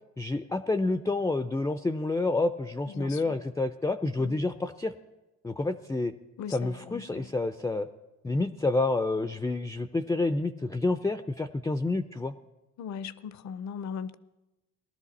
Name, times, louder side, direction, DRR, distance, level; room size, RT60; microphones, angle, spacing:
voice 1, 0.2-4.9 5.4-6.1 6.5-7.9 8.2-12.3, left 2 dB, 10° left, 0.4 m, -29 dB
voice 2, 2.9-3.4 4.2-4.4 6.4-7.3 12.8-14.1, left 7 dB, 65° left, 0.6 m, -39 dB
18.5 x 12.5 x 4.1 m
cardioid pair, 90°, 30 cm